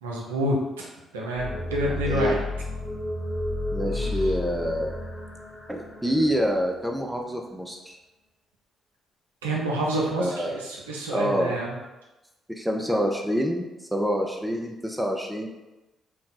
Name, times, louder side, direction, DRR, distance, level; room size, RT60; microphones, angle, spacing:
voice 1, 0.0-2.4 3.9-4.2 9.4-11.8, right 1 dB, 85° right, -3 dB, 0.4 m, -28 dB
sound 1, 1.4-6.8, left 2 dB, 40° left, 0.9 m, -32 dB
voice 2, 1.9-2.4 3.7-4.9 5.7-8.0 10.2-10.6 11.1-11.6 12.5-15.5, equal, 5° right, 1 dB, 0.6 m, -27 dB
2.6 x 2.2 x 3.9 m, 1.0 s
hypercardioid pair, 40°, 0 cm